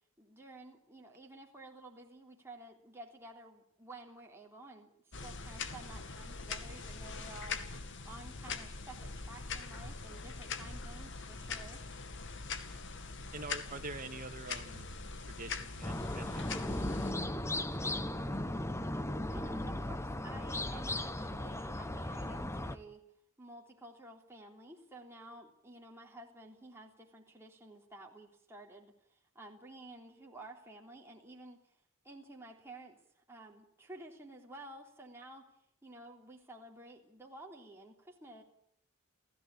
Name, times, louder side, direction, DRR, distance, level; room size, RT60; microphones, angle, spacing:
voice 1, 0.2-7.6 8.0-11.8 19.3-23.0 23.4-31.6 32.0-33.0 33.3-35.5 35.8-38.4, right 2 dB, 10° right, 0 dB, 3.4 m, -52 dB
sound 1, 5.1-17.1, left 4 dB, 60° left, 2.3 m, -42 dB
voice 2, 13.3-14.9 15.3-18.6, right 3 dB, 40° right, 7 dB, 2.4 m, -47 dB
sound 2, 15.8-22.8, left 1 dB, 15° left, 1.2 m, -37 dB
30.0 x 16.0 x 8.6 m, 0.71 s
head